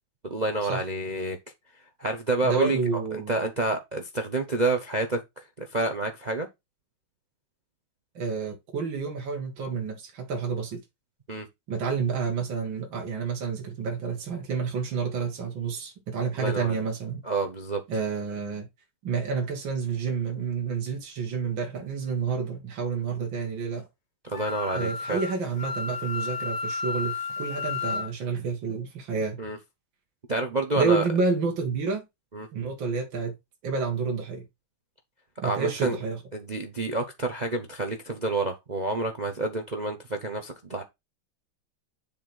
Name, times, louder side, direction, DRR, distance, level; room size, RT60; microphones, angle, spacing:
voice 1, 0.3-1.4 2.0-3.0 3.3-5.2 5.6-6.5 11.3-11.5 16.4-16.8 17.2-17.8 24.2-25.2 29.4-29.6 30.3-31.0 32.3-32.5 35.4-36.0 36.3-40.8, right 2 dB, 45° right, 0.5 m, -28 dB
voice 2, 2.4-3.4 8.1-10.8 11.7-17.2 17.9-18.7 19.0-23.9 24.7-29.4 30.8-32.0 32.5-33.4 33.6-34.5 35.4-36.2, right 5 dB, 65° right, 2.6 m, -29 dB
Wind instrument woodwind instrument, 24.3-28.1, left 4 dB, 45° left, 1.0 m, -32 dB
7.3 x 3.5 x 6.1 m
omnidirectional pair, 2.3 m